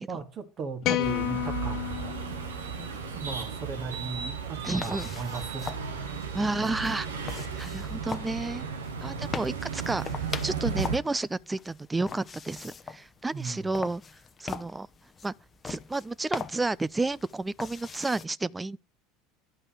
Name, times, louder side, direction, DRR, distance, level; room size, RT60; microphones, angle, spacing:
voice 1, 0.0-2.2 3.1-6.1 13.3-13.7, right 5 dB, 40° right, 2.5 m, -37 dB
sound 1, 0.8-3.2, left 15 dB, 50° left, 1.0 m, -31 dB
sound 2, 1.0-11.0, right 6 dB, 85° right, 1.8 m, -35 dB
voice 2, 4.6-5.1 6.3-8.6 9.0-14.0 14.4-14.9 15.2-15.3 15.6-18.8, right 2 dB, 15° right, 0.5 m, -31 dB
sound 3, 4.7-18.3, left 5 dB, 25° left, 0.9 m, -42 dB
11.0 x 5.4 x 7.3 m
hypercardioid pair, 75°, 0 cm